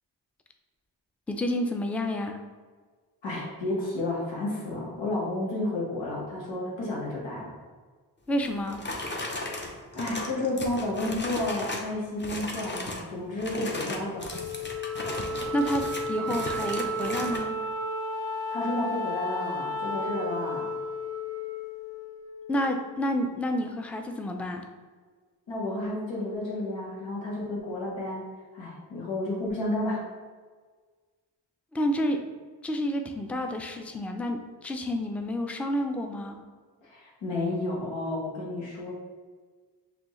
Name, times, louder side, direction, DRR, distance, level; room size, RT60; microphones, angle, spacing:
voice 1, 1.3-2.4 8.3-8.8 15.5-17.6 22.5-24.6 31.7-32.2 32.6-36.4, equal, 5° left, 4 dB, 0.5 m, -29 dB
voice 2, 3.2-7.5 9.4-14.3 18.5-20.7 25.5-28.2 28.5-30.1 36.8-38.9, left 2 dB, 85° left, -4 dB, 1.3 m, -31 dB
sound 1, 8.4-11.9 12.2-13.1 13.4-17.4, left 2 dB, 25° left, 0.9 m, -36 dB
Wind instrument woodwind instrument, 14.3-22.9, left 1 dB, 55° left, 0.9 m, -33 dB
5.2 x 2.8 x 3.1 m, 1.5 s
cardioid pair, 45°, 44 cm